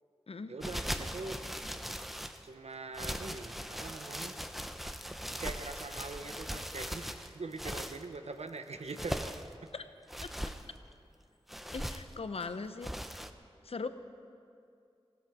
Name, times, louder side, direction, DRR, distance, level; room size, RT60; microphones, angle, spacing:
voice 1, 0.5-1.4 2.4-4.4 5.4-7.0 7.3-9.4, right 3 dB, 80° right, 7 dB, 0.9 m, -42 dB
sound 1, 0.6-2.4 2.9-8.0 8.7-9.5 10.1-10.6 11.5-12.1 12.8-13.3, equal, ahead, 0.7 m, -39 dB
sound 2, 7.0-7.4 8.7-9.2 10.4-10.9 12.4-12.8, right 1 dB, 55° right, 3.1 m, -62 dB
voice 2, 11.7-12.9 13.6-13.9, left 4 dB, 70° left, 10 dB, 0.7 m, -39 dB
16.0 x 13.5 x 4.9 m, 2.5 s
wide cardioid pair, 55°, 11 cm